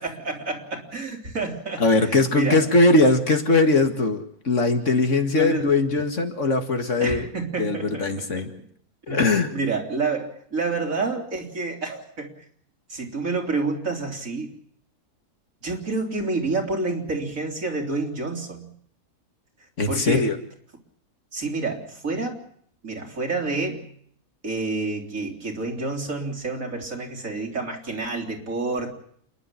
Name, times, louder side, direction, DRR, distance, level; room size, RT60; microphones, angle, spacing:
voice 1, 0.0-2.6 5.3-5.7 7.0-8.5 9.1-12.3 12.9-14.5 15.6-18.7 19.9-20.3 21.3-22.4 22.8-23.9 24.4-29.0, right 3 dB, 65° right, 2 dB, 4.1 m, -28 dB
voice 2, 1.8-7.3 7.6-8.5 9.1-9.5 19.8-20.4, left 2 dB, 55° left, 6 dB, 2.3 m, -20 dB
28.5 x 11.0 x 9.9 m, 0.63 s
omnidirectional pair, 1.5 m